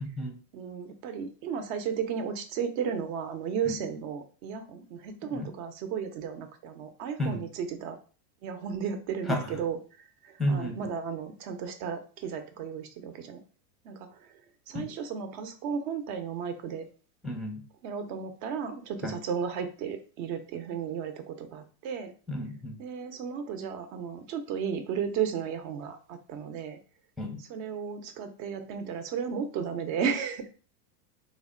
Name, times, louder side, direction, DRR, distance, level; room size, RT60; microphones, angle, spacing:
voice 1, 0.5-8.0 8.4-13.4 13.8-14.3 14.7-16.9 17.8-22.1 22.8-26.8 27.4-30.4, right 7 dB, 55° right, 7 dB, 0.8 m, -34 dB
voice 2, 10.4-10.8 14.7-14.9 17.2-17.6 19.0-19.2 22.3-22.8 27.2-27.4, left 1 dB, ahead, 2 dB, 0.6 m, -31 dB
3.3 x 2.2 x 3.7 m, 0.38 s
hypercardioid pair, 115°, 50 cm